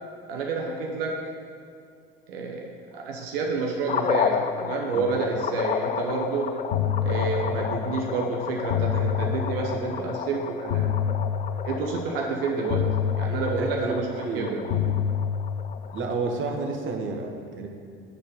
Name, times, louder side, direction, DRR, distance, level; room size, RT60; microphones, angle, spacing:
voice 1, 0.3-1.2 2.3-6.5 7.0-10.9 11.6-12.9 13.2-14.0 14.3-14.6, right 4 dB, 80° right, 0 dB, 0.8 m, -29 dB
sound 1, 3.9-16.1, left 8 dB, 25° left, 0.4 m, -32 dB
sound 2, 6.7-7.9 8.7-9.9 10.7-11.9 12.7-13.9 14.7-15.9, left 8 dB, 70° left, 0.8 m, -27 dB
voice 2, 13.6-14.8 15.9-17.7, right 3 dB, 45° right, 2 dB, 1.1 m, -30 dB
8.0 x 4.3 x 5.3 m, 2.3 s
hypercardioid pair, 70°, 29 cm